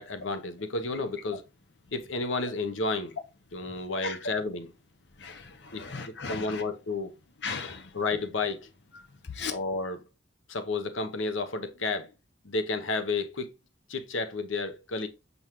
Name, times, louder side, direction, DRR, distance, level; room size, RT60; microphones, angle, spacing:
voice 1, 0.0-1.4 1.9-3.2 3.5-4.7 5.7-5.8 6.3-7.1 7.9-8.6 9.5-10.0 10.5-12.1 12.4-13.5 13.9-15.1, left 3 dB, 85° left, 1.0 m, -31 dB
voice 2, 5.2-6.6 7.4-7.9 9.3-9.5, left 5 dB, 60° left, 0.8 m, -36 dB
7.0 x 5.6 x 3.1 m
head